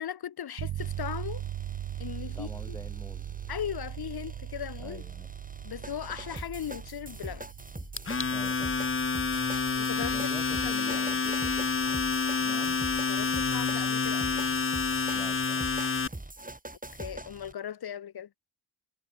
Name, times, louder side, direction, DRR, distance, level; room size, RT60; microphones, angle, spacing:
voice 1, 0.0-1.4 2.0-2.8 3.5-5.0 5.6-7.5 9.8-10.1 10.5-11.0 13.1-14.5 16.9-18.3, left 9 dB, 50° left, 0.9 m, -38 dB
sound 1, 0.6-10.7, right 12 dB, 65° right, 0.9 m, -40 dB
sound 2, 0.8-17.5, right 2 dB, 15° right, 5.8 m, -44 dB
voice 2, 2.3-3.3 4.8-5.3 8.3-8.7 9.9-11.7 12.4-12.8 15.1-15.7, left 1 dB, 5° left, 7.6 m, -46 dB
Domestic sounds home sounds, 8.0-16.1, left 4 dB, 25° left, 1.1 m, -28 dB
supercardioid pair, 45°, 47 cm